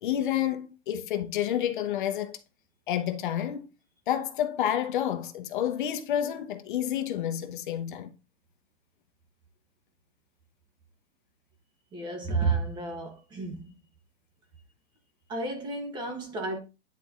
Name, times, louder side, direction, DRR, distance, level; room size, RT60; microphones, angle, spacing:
voice 1, 0.0-2.4 2.9-3.7 4.1-8.1, left 10 dB, 45° left, 0.8 m, -29 dB
voice 2, 11.9-13.7 15.3-16.6, right 3 dB, 15° right, 0.8 m, -31 dB
10.0 x 4.1 x 2.4 m
hypercardioid pair, 155°, 35 cm